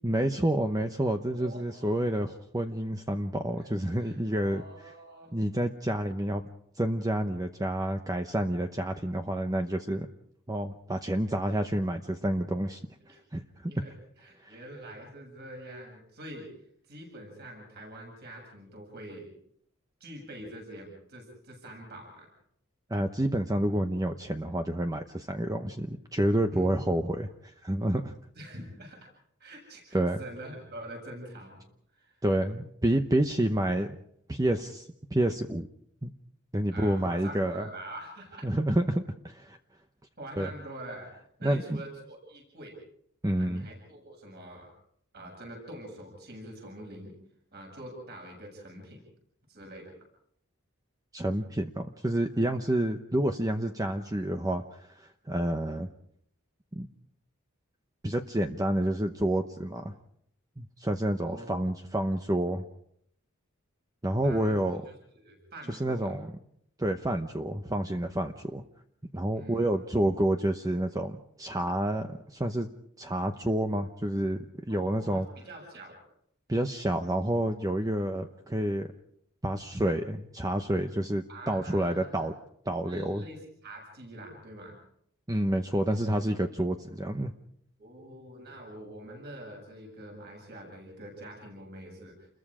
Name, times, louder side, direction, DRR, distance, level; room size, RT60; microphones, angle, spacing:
voice 1, 0.0-4.6 5.3-6.4 6.8-10.1 10.5-12.8 13.1-13.7 14.4-14.6 22.9-28.1 29.9-30.2 32.2-34.0 34.3-35.7 36.0-36.1 36.5-37.7 38.4-39.6 40.4-40.5 41.4-41.8 43.2-43.7 51.1-55.9 56.8-56.9 58.0-59.9 60.6-62.6 64.0-64.8 65.7-66.3 66.8-68.6 69.1-72.7 73.0-75.3 76.5-78.9 79.4-82.3 82.7-83.2 85.3-87.3, right 1 dB, 15° right, 5 dB, 0.9 m, -29 dB
voice 2, 1.3-1.9 3.6-3.7 4.0-5.3 13.1-13.2 13.7-13.9 14.2-16.5 16.9-19.3 20.0-22.3 26.5-26.8 28.4-29.0 29.4-31.6 31.9-32.2 36.7-38.5 40.2-41.1 41.4-42.7 43.4-44.7 45.1-47.1 47.5-49.0 49.5-49.9 61.2-61.5 64.2-64.8 65.1-66.1 69.3-69.7 74.7-76.0 81.3-82.3 82.8-84.8 87.8-92.3, right 1 dB, 50° right, 1 dB, 7.7 m, -45 dB
29.5 x 22.0 x 5.0 m, 0.71 s
head